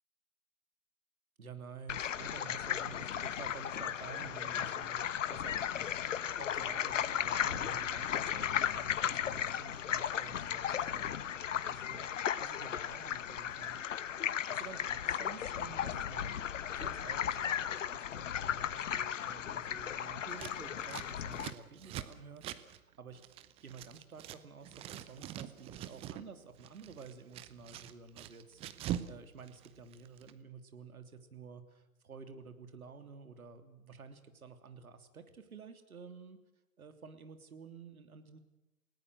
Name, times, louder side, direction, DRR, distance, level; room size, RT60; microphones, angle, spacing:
voice 1, 1.4-6.0 6.4-12.1 12.3-13.8 14.5-23.2 23.6-36.4 36.8-38.4, right 5 dB, 70° right, 8 dB, 3.3 m, -51 dB
sound 1, 1.9-21.5, left 9 dB, 55° left, 1.3 m, -36 dB
Scissors, 20.3-24.4 24.6-26.3 26.6-29.1 29.4-30.3, right 12 dB, 15° right, 0.8 m, -43 dB
30.0 x 18.5 x 6.5 m, 0.97 s
figure-of-eight pair, 120°, 45 cm